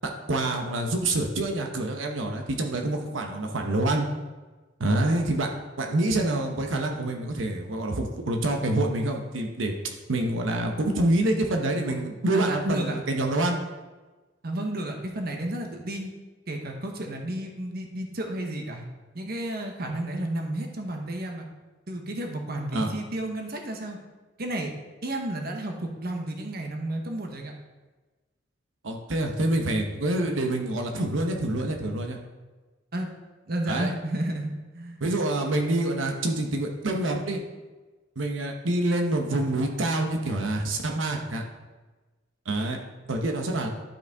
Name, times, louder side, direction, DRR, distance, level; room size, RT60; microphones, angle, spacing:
voice 1, 0.0-4.1 4.8-5.5 5.8-13.6 22.7-22.9 28.8-32.2 33.7-33.9 35.0-37.4 38.2-41.4 42.5-42.8 43.1-43.7, right 1 dB, 85° right, 2 dB, 1.0 m, -26 dB
voice 2, 12.3-12.9 14.4-16.1 16.5-18.8 19.1-21.5 21.9-24.0 24.4-24.7 25.0-27.5 32.9-33.1 33.5-35.0, right 1 dB, 55° right, 3 dB, 1.0 m, -32 dB
11.5 x 5.4 x 3.5 m, 1.2 s
head